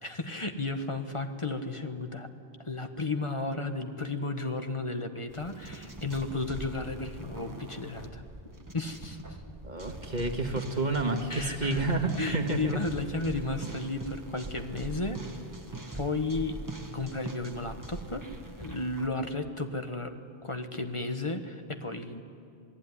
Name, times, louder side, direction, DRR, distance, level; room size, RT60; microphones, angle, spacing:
voice 1, 0.0-2.3 2.6-8.2 8.7-9.4 11.3-11.9 12.2-15.2 15.9-16.6 16.9-18.2 18.6-20.1 20.4-22.2, left 3 dB, 30° left, 6 dB, 1.4 m, -33 dB
sound 1, 5.3-19.1, right 2 dB, 15° right, 1.8 m, -42 dB
voice 2, 9.6-12.8, right 2 dB, 40° right, 4 dB, 2.0 m, -30 dB
27.5 x 19.0 x 9.9 m, 2.6 s
omnidirectional pair, 1.1 m